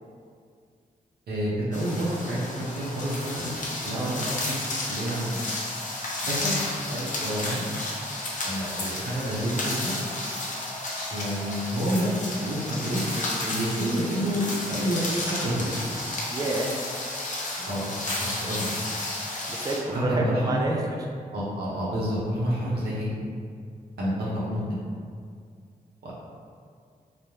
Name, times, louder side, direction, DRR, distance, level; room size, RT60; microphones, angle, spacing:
voice 1, 1.3-3.5 3.8-4.5 4.9-5.4 6.2-6.6 6.9-7.7 8.4-9.9 11.1-15.0 15.4-15.7 17.7-17.9 18.2-18.7 19.9-20.6 21.3-23.2 24.0-24.6 26.0-26.1, equal, 90° right, -6 dB, 0.6 m, -29 dB
sound 1, 1.7-19.8, left 2 dB, 50° left, 0.6 m, -32 dB
voice 2, 3.9-4.2 16.3-16.7 17.6-17.7 19.5-21.1, right 2 dB, 25° right, -1 dB, 0.3 m, -29 dB
2.2 x 2.0 x 2.9 m, 2.2 s
cardioid pair, 55°, 16 cm